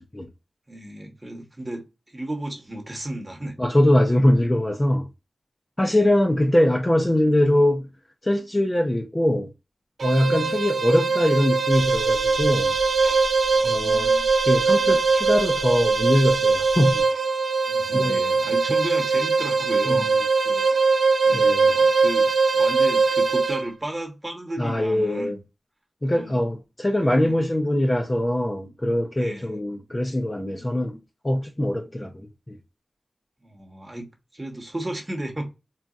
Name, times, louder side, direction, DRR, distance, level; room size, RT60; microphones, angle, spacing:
voice 1, 0.7-3.6 5.8-6.1 10.2-10.5 13.5-14.0 17.7-20.1 20.4-20.7 21.2-25.4 26.1-26.4 27.0-27.4 29.2-29.5 33.4-35.5, right 1 dB, 25° right, 1.0 m, -34 dB
voice 2, 3.6-5.1 5.8-7.9 8.2-9.5 10.0-12.8 13.6-17.0 17.9-18.2 19.9-20.0 21.3-21.7 24.6-25.4 26.0-31.0 31.2-32.6, left 1 dB, 20° left, 0.5 m, -22 dB
sound 1, 10.0-23.7, right 4 dB, 80° right, 0.4 m, -21 dB
sound 2, 11.7-17.0, right 2 dB, 50° right, 1.0 m, -35 dB
4.0 x 2.3 x 2.3 m
wide cardioid pair, 95°, 0 cm